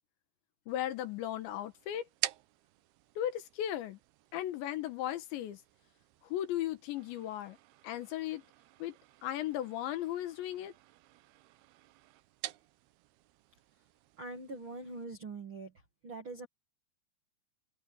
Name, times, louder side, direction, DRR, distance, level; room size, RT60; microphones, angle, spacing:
voice 1, 0.7-2.1 3.2-4.0 4.3-5.6 6.2-7.6 7.8-8.4 8.8-9.0 9.2-10.7, left 12 dB, 75° left, 3.5 m, -36 dB
sound 1, 0.7-15.0, right 17 dB, 80° right, 2.3 m, -48 dB
voice 2, 14.2-15.7 16.0-16.5, right 3 dB, 50° right, 1.5 m, -43 dB
open air
omnidirectional pair, 5.4 m